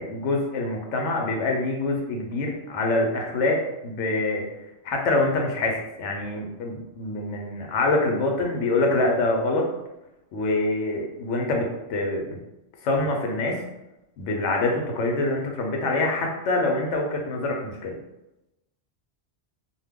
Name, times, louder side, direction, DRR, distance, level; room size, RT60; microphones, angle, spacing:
voice 1, 0.0-4.4 4.8-9.7 10.3-12.4 12.8-13.6 14.2-17.9, left 2 dB, 85° left, 1 dB, 0.9 m, -25 dB
2.2 x 2.2 x 3.4 m, 0.93 s
omnidirectional pair, 1.2 m